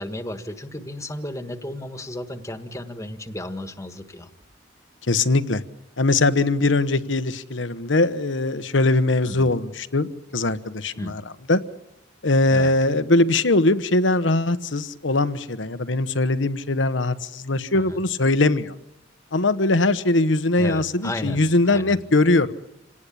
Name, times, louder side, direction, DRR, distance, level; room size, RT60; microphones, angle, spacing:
voice 1, 0.0-4.3 9.3-9.5 11.0-11.1 12.5-12.7 17.7-18.0 20.6-22.0, left 1 dB, 15° left, 8 dB, 1.6 m, -34 dB
voice 2, 5.1-5.6 6.0-11.2 11.5-11.6 12.2-18.7 19.3-22.5, left 2 dB, 75° left, 12 dB, 1.2 m, -21 dB
27.5 x 18.5 x 8.6 m, 0.87 s
head